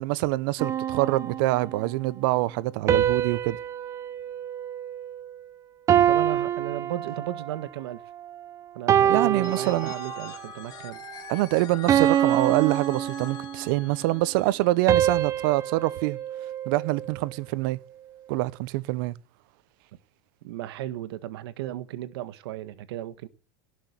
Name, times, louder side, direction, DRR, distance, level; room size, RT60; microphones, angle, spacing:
voice 1, 0.0-3.6 9.1-9.9 11.3-16.2 16.7-17.8 18.3-19.1, right 18 dB, 60° right, 0.9 m, -25 dB
sound 1, 0.6-1.9 2.9-5.4 5.9-7.6 8.2-8.4 8.9-10.4 10.9-11.2 11.9-13.8 14.9-17.3, right 10 dB, 25° right, 0.9 m, -26 dB
voice 2, 6.1-8.0 8.7-11.0 20.4-23.3, right 13 dB, 85° right, 1.6 m, -35 dB
Telephone, 9.4-15.2, left 9 dB, 30° left, 1.6 m, -44 dB
18.0 x 6.4 x 8.2 m
supercardioid pair, 165°, 13 cm